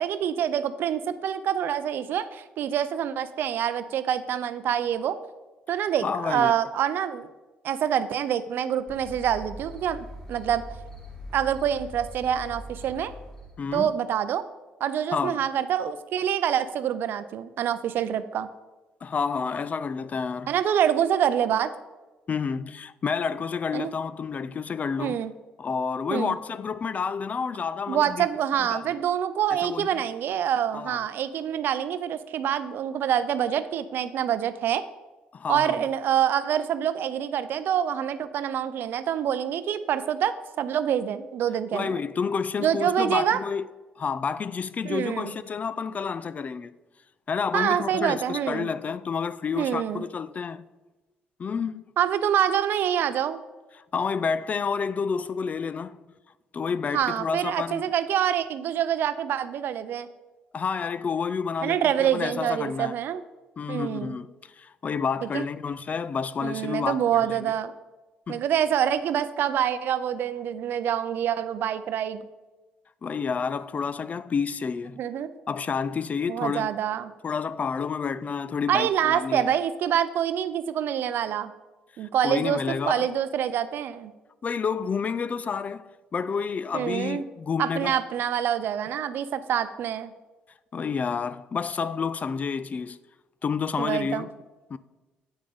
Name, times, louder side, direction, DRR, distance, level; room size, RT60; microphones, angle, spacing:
voice 1, 0.0-5.2 5.7-7.3 7.6-10.6 11.3-13.1 13.7-14.4 14.8-18.5 20.5-21.7 23.7-23.9 25.0-25.3 26.1-26.3 27.9-34.8 35.5-42.0 42.6-43.4 44.8-45.3 47.5-48.7 49.6-50.1 52.0-53.4 56.9-60.1 61.6-63.2 63.7-64.2 65.3-65.4 66.4-67.7 68.3-72.2 75.0-75.3 76.3-77.1 78.7-81.5 82.0-84.1 86.7-87.2 87.6-90.1 93.8-94.3, right 9 dB, 65° right, 0.5 m, -26 dB
voice 2, 6.0-6.5 13.6-13.9 15.1-15.4 19.0-20.5 22.3-25.2 25.6-28.3 28.7-29.0 29.5-30.0 30.7-31.0 35.3-35.9 41.7-43.7 44.0-46.7 47.3-50.6 51.4-51.8 53.9-56.0 56.5-57.8 60.5-63.0 63.6-67.0 67.3-67.5 68.3-68.4 73.0-75.0 75.5-76.7 77.2-79.5 82.0-83.1 84.4-88.0 90.7-93.0 93.4-94.3 94.7-94.8, left 6 dB, 40° left, 0.4 m, -29 dB
sound 1, 8.9-13.8, left 1 dB, 15° left, 2.1 m, -42 dB
8.0 x 6.2 x 3.9 m
supercardioid pair, 65°, 4 cm